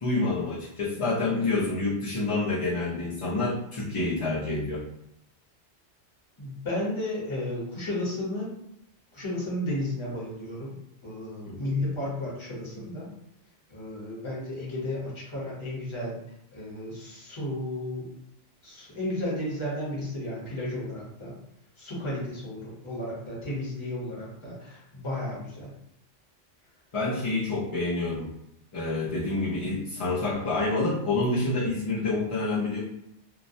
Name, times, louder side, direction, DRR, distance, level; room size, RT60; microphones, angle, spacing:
voice 1, 0.0-4.8 11.4-11.7 26.9-28.3 28.7-32.8, left 2 dB, 45° left, -9 dB, 0.4 m, -28 dB
voice 2, 6.4-8.5 9.1-10.8 11.0-13.1 13.7-16.2 16.5-18.1 18.6-21.3 21.8-25.7, left 1 dB, 30° left, -6 dB, 0.8 m, -33 dB
2.3 x 2.0 x 2.6 m, 0.79 s
omnidirectional pair, 1.2 m